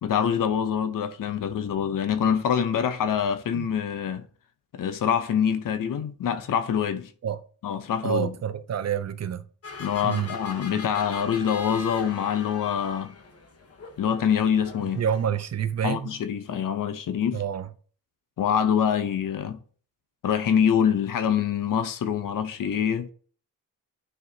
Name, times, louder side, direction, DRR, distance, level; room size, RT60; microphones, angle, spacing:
voice 1, 0.0-4.3 4.7-7.1 7.6-8.3 9.8-13.1 14.0-15.0 15.8-17.4 18.4-19.6 20.2-23.1, left 8 dB, 65° left, 0.8 m, -25 dB
voice 2, 8.0-9.4 10.0-10.3 15.0-16.1 17.3-17.7, right 8 dB, 45° right, 0.6 m, -28 dB
sound 1, 9.6-15.2, left 4 dB, 40° left, 1.2 m, -40 dB
9.7 x 4.7 x 2.8 m
wide cardioid pair, 140°, 36 cm